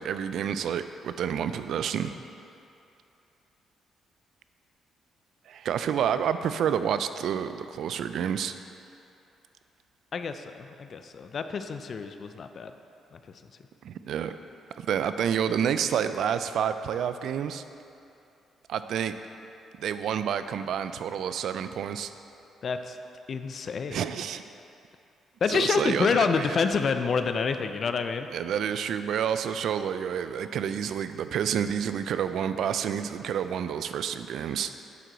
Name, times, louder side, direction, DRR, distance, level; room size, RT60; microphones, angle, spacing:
voice 1, 0.0-2.1 5.5-8.6 13.8-14.4 14.7-17.6 18.7-19.2 19.8-22.1 23.9-24.4 25.5-26.7 28.3-34.7, right 8 dB, 70° right, 11 dB, 0.3 m, -29 dB
voice 2, 10.1-12.7 13.1-13.2 22.6-23.0 23.3-24.0 25.4-28.3, left 5 dB, 50° left, 9 dB, 0.4 m, -28 dB
11.0 x 4.5 x 3.9 m, 2.7 s
cardioid pair, 90°, 0 cm